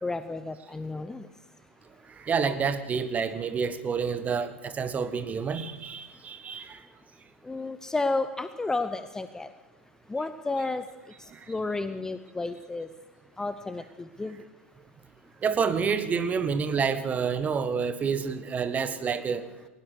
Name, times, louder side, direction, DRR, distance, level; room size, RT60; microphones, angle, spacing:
voice 1, 0.0-1.5 6.0-6.2 6.7-6.8 7.4-9.5 10.1-12.9 13.4-14.5, left 3 dB, 10° left, 11 dB, 0.8 m, -32 dB
voice 2, 2.2-6.8 11.3-11.4 15.4-19.5, right 6 dB, 20° right, 12 dB, 1.6 m, -28 dB
21.5 x 19.0 x 6.7 m, 1.1 s
figure-of-eight pair, 100°, 7 cm